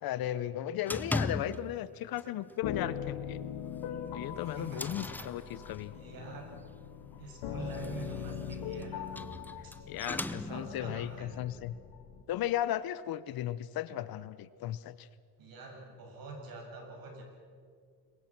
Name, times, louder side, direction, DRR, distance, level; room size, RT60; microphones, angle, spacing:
voice 1, 0.0-3.4 4.1-5.9 9.9-11.7 12.3-15.1, left 12 dB, 55° left, 16 dB, 0.9 m, -36 dB
sound 1, 0.9-1.9 2.2-2.5 2.9-3.0 3.4-3.5 4.1-6.1 7.5-10.9, left 2 dB, 5° left, 0.6 m, -39 dB
sound 2, 2.6-12.2, left 8 dB, 85° left, 2.4 m, -41 dB
voice 2, 4.4-5.3 5.9-6.6 7.2-9.4 9.6-9.7 10.5-11.5 15.4-17.2, right 3 dB, 55° right, 1 dB, 7.3 m, -46 dB
27.0 x 23.0 x 6.1 m, 2.1 s
cardioid pair, 145°, 42 cm